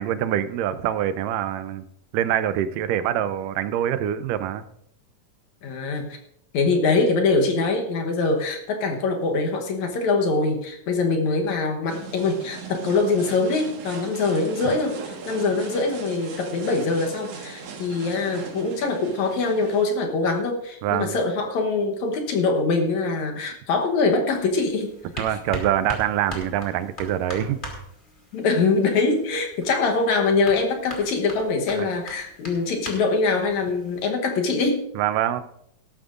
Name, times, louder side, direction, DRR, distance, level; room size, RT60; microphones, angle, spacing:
voice 1, 0.0-1.8 2.1-4.6 14.6-14.8 20.8-21.2 25.2-27.6 31.8-31.9 35.0-35.4, right 11 dB, 85° right, 12 dB, 2.3 m, -25 dB
voice 2, 5.6-6.2 6.5-24.9 25.3-25.4 28.3-34.8, left 3 dB, 65° left, 3 dB, 2.3 m, -23 dB
sound 1, 11.9-19.8, right 4 dB, 65° right, 2.9 m, -39 dB
sound 2, 24.3-34.1, left 1 dB, 15° left, 2.2 m, -40 dB
17.5 x 13.0 x 2.5 m, 0.74 s
omnidirectional pair, 3.7 m